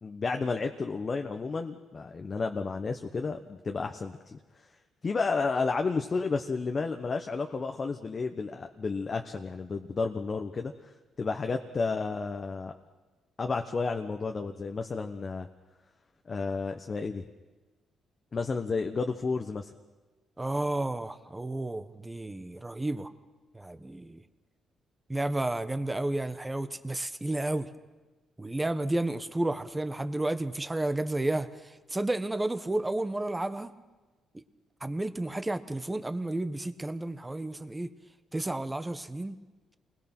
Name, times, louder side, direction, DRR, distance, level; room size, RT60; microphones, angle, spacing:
voice 1, 0.0-4.4 5.0-10.7 11.2-12.7 13.4-15.5 16.3-17.2 18.3-19.7, left 4 dB, 35° left, 5 dB, 1.1 m, -31 dB
voice 2, 20.4-23.1 23.5-24.2 25.1-27.7 28.4-31.5 31.9-33.7 34.8-37.9 38.3-39.4, right 2 dB, 15° right, 11 dB, 1.2 m, -31 dB
28.0 x 20.5 x 6.1 m, 1.2 s
cardioid pair, 90°, 0 cm